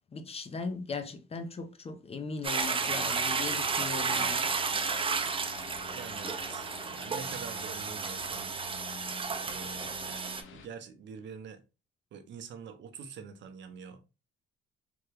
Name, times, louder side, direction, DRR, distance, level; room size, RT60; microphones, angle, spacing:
voice 1, 0.1-4.4, left 4 dB, 30° left, 0.6 m, -38 dB
Toilet flush, 2.4-10.4, right 5 dB, 25° right, 0.5 m, -32 dB
sound 1, 2.8-10.7, left 6 dB, 80° left, 0.6 m, -48 dB
voice 2, 5.9-8.5 9.4-11.6 12.1-14.0, right 6 dB, 65° right, 0.7 m, -46 dB
3.4 x 2.2 x 3.3 m
cardioid pair, 90°, 20 cm